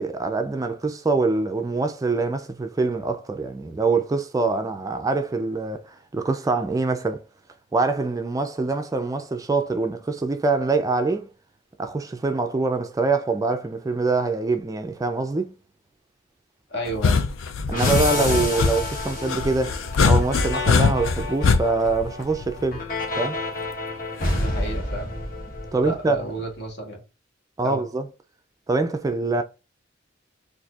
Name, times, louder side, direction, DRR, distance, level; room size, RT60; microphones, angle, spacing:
voice 1, 0.0-7.2 7.7-11.3 11.8-15.5 17.7-22.9 23.2-23.4 25.7-26.2 27.6-28.1 28.7-29.4, right 3 dB, 15° right, 0.3 m, -24 dB
voice 2, 16.7-17.2 24.4-25.1 25.8-27.0 27.6-27.8, right 1 dB, 60° left, 1.2 m, -32 dB
sound 1, 16.9-22.9 24.3-24.7, left 4 dB, 80° left, 0.5 m, -22 dB
sound 2, 17.7-26.2, left 2 dB, 45° left, 1.1 m, -30 dB
4.1 x 2.6 x 2.3 m
head